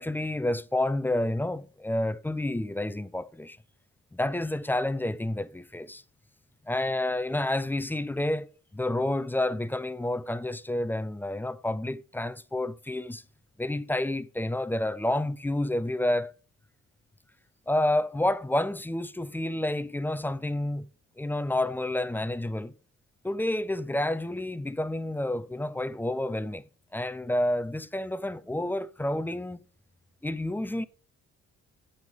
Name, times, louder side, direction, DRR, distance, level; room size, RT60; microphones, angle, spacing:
voice 1, 0.0-3.6 4.1-6.0 6.7-13.2 13.6-16.3 17.7-20.9 21.2-22.7 23.2-26.6 26.9-29.6 30.2-30.9, left 1 dB, 5° left, 0.5 m, -29 dB
8.8 x 6.0 x 4.9 m
cardioid pair, 90°, 30 cm